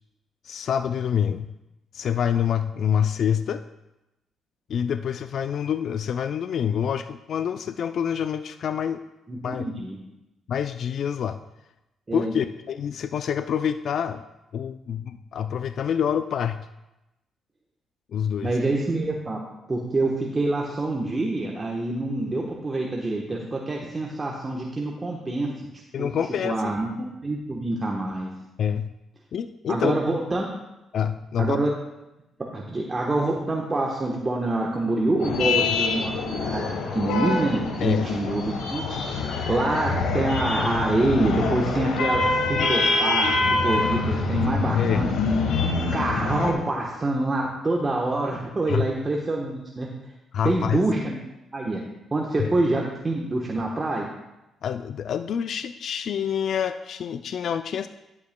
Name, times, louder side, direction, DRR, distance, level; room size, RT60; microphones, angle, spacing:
voice 1, 0.4-1.5 1.9-3.6 4.7-9.0 9.4-9.7 10.5-11.4 12.1-14.2 14.5-16.6 18.1-18.5 25.9-26.7 28.6-28.9 29.3-30.0 30.9-31.6 37.8-38.1 44.7-45.1 48.7-48.9 50.3-50.8 52.4-52.5 54.6-57.9, left 8 dB, 65° left, 9 dB, 0.3 m, -26 dB
voice 2, 9.3-10.0 12.1-12.3 18.4-19.4 19.7-25.5 26.0-26.1 26.4-28.3 29.7-30.5 31.4-31.7 32.5-39.0 39.5-43.3 43.6-45.1 45.6-49.9 50.4-51.2 51.5-51.8 52.1-54.1, right 2 dB, 25° right, -2 dB, 1.1 m, -26 dB
sound 1, 35.2-46.5, left 3 dB, 85° left, 1.2 m, -25 dB
11.5 x 8.5 x 2.2 m, 0.95 s
cardioid pair, 90°, 0 cm